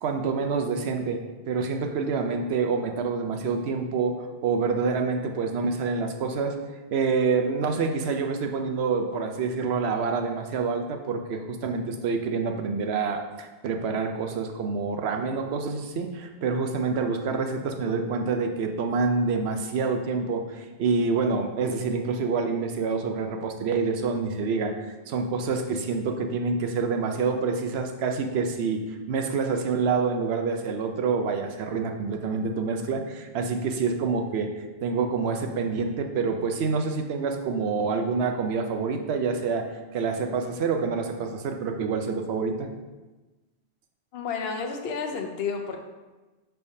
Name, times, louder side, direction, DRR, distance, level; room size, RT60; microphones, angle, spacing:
voice 1, 0.0-6.6 6.9-24.7 25.1-28.8 29.1-34.5 34.8-42.7, right 4 dB, 70° right, 5 dB, 0.9 m, -27 dB
voice 2, 44.1-45.8, left 5 dB, 65° left, 4 dB, 0.9 m, -31 dB
10.0 x 3.4 x 2.7 m, 1.2 s
omnidirectional pair, 1.1 m